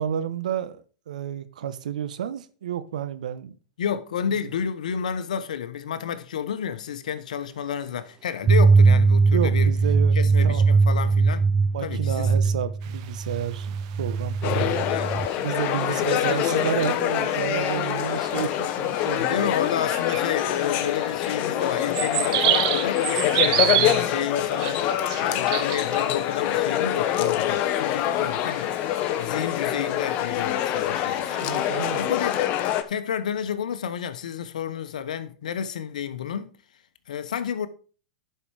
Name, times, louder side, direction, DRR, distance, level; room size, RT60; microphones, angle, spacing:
voice 1, 0.0-3.5 9.3-10.8 11.7-14.9 15.4-19.5 31.3-32.0, right 9 dB, 80° right, 1.1 m, -31 dB
voice 2, 3.8-9.7 10.1-11.5 11.8-12.3 14.5-15.1 15.9-16.5 19.2-28.7 29.2-32.4 32.9-36.5 37.1-37.7, left 8 dB, 80° left, 1.1 m, -31 dB
sound 1, 8.4-15.3, right 4 dB, 20° right, 0.4 m, -20 dB
sound 2, 12.8-32.0, right 13 dB, 55° right, 1.0 m, -33 dB
sound 3, 14.4-32.8, left 11 dB, 40° left, 1.1 m, -25 dB
11.0 x 5.8 x 4.8 m
hypercardioid pair, 125°, 4 cm